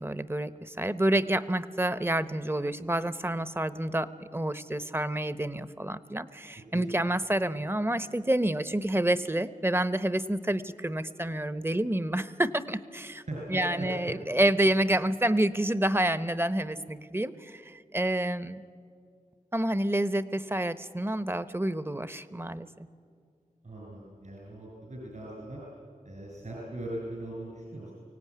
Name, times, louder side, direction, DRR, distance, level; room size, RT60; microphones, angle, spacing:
voice 1, 0.0-13.2 13.5-18.6 19.5-22.7, right 1 dB, 15° right, 14 dB, 0.9 m, -28 dB
voice 2, 13.3-14.1 23.6-25.6 26.0-27.9, right 1 dB, 65° right, -4 dB, 6.3 m, -39 dB
24.0 x 17.0 x 9.4 m, 2.2 s
wide cardioid pair, 50°, 14 cm